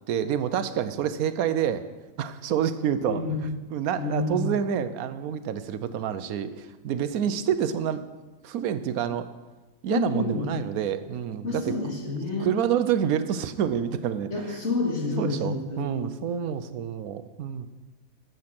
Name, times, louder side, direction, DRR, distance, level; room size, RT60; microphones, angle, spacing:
voice 1, 0.1-1.8 2.2-3.2 3.7-8.0 8.4-9.3 9.8-11.7 12.4-14.6 15.2-17.7, right 9 dB, 80° right, 12 dB, 1.1 m, -28 dB
voice 2, 3.0-3.3 4.0-4.4 9.9-10.5 11.4-12.5 14.3-15.9, left 3 dB, 50° left, -2 dB, 2.5 m, -29 dB
9.4 x 7.1 x 5.9 m, 1.2 s
omnidirectional pair, 1.5 m